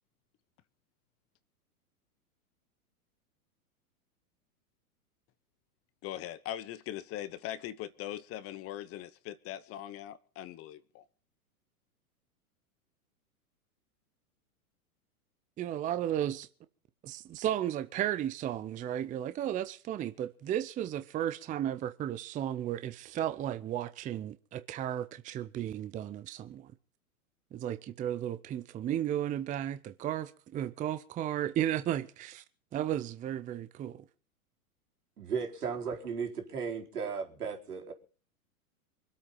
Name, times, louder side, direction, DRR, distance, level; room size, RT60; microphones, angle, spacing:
voice 1, 6.0-11.0, left 12 dB, 30° left, 1.0 m, -41 dB
voice 2, 15.6-16.5 17.0-26.7 27.5-32.4 32.7-34.0, right 11 dB, 20° right, 0.6 m, -34 dB
voice 3, 35.2-37.9, right 6 dB, 85° right, 4.5 m, -35 dB
24.0 x 8.5 x 5.6 m
hypercardioid pair, 120°, 45 cm